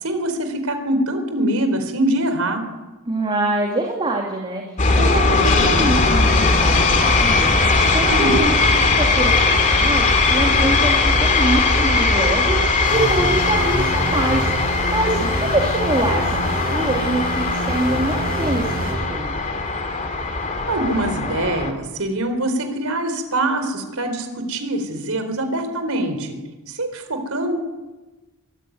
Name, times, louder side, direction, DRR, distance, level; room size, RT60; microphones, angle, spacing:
voice 1, 0.0-2.6 8.1-8.5 15.1-15.3 20.7-26.3 26.7-27.5, right 1 dB, 85° right, 7 dB, 4.3 m, -24 dB
voice 2, 3.1-7.5 7.9-8.5 8.9-19.4, right 2 dB, 25° right, 0 dB, 2.8 m, -25 dB
sound 1, 4.8-21.7, left 3 dB, 35° left, 2.7 m, -19 dB
sound 2, 12.8-18.9, right 1 dB, 45° right, 7.8 m, -27 dB
23.5 x 14.5 x 9.4 m, 1.2 s
head